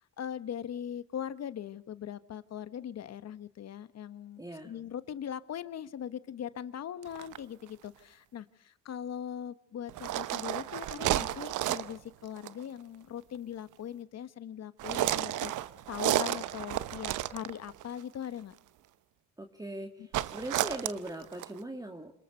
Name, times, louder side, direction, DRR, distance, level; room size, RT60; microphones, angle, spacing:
voice 1, 0.2-15.5 15.9-18.5 20.0-20.1, left 9 dB, 60° left, 14 dB, 1.2 m, -40 dB
voice 2, 4.4-4.7 19.4-22.1, right 1 dB, 10° right, 4 dB, 2.2 m, -40 dB
sound 1, 7.0-7.4 9.9-12.0 12.4-12.6 14.8-17.8 20.1-21.6, right 13 dB, 80° right, 0.9 m, -32 dB
27.0 x 20.5 x 6.6 m, 0.66 s
cardioid pair, 90°, 30 cm